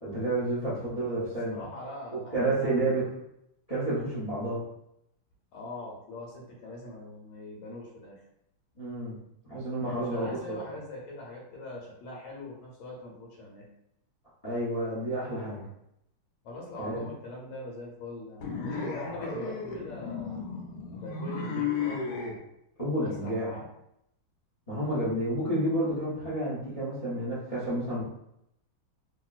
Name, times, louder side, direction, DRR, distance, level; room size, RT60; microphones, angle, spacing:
voice 1, 0.0-1.6 2.3-3.0 3.7-4.6 8.8-9.2 9.4-10.6 14.4-15.6 16.8-17.0 22.8-23.5 24.7-28.0, right 1 dB, 55° left, -9 dB, 0.4 m, -30 dB
voice 2, 0.7-2.9 5.5-8.2 9.7-13.7 16.4-20.6 21.0-22.0 23.0-23.7, left 2 dB, 90° left, -2 dB, 1.5 m, -42 dB
sound 1, 18.4-22.4, left 5 dB, 70° left, 0.9 m, -34 dB
2.9 x 2.8 x 2.3 m, 0.79 s
omnidirectional pair, 2.2 m